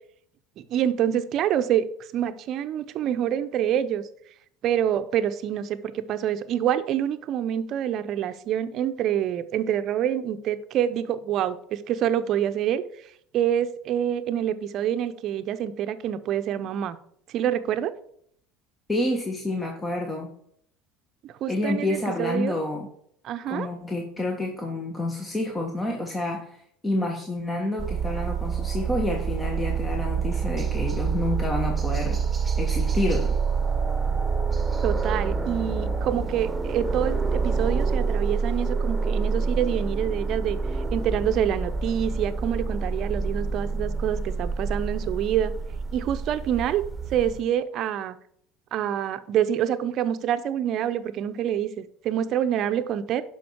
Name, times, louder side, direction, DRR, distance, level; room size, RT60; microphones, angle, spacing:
voice 1, 0.6-1.9 2.1-4.0 4.6-12.8 13.3-17.0 17.3-17.9 21.2-22.5 23.2-23.7 34.8-40.6 40.9-45.5 45.9-46.8 47.1-48.2 48.7-53.2, right 10 dB, 55° right, 11 dB, 0.8 m, -26 dB
voice 2, 18.9-20.3 21.5-22.9 23.5-32.2 32.6-33.4, left 2 dB, 15° left, 2 dB, 1.6 m, -29 dB
sound 1, 27.8-47.4, right 5 dB, 15° right, 1.5 m, -27 dB
11.5 x 5.3 x 4.7 m, 0.66 s
hypercardioid pair, 80°, 0 cm